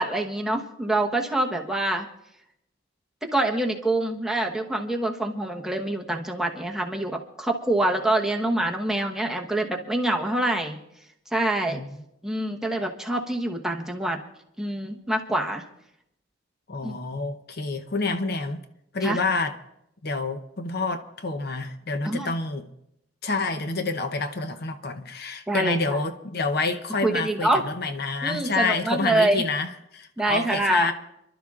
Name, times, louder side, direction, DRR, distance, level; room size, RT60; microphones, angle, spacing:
voice 1, 0.0-2.1 3.2-10.8 11.3-11.8 12.2-14.2 14.6-15.6 16.8-17.0 19.0-19.2 22.0-22.3 25.5-26.0 27.0-27.6 28.2-29.4 30.2-30.9, right 1 dB, 5° right, 1.1 m, -25 dB
voice 2, 16.7-18.6 18.9-19.5 20.0-22.7 23.2-30.9, left 3 dB, 55° left, 0.8 m, -28 dB
29.5 x 12.0 x 2.5 m
head